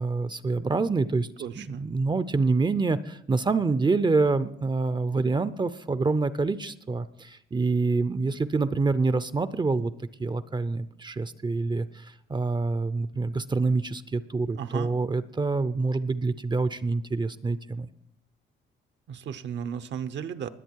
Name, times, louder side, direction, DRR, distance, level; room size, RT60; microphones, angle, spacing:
voice 1, 0.0-1.3 1.6-9.9 10.2-17.9, right 3 dB, 20° right, 14 dB, 0.6 m, -26 dB
voice 2, 1.4-1.8 14.6-14.9 19.1-20.5, right 8 dB, 65° right, 11 dB, 0.9 m, -34 dB
21.0 x 7.9 x 4.6 m, 0.72 s
cardioid pair, 90°, 20 cm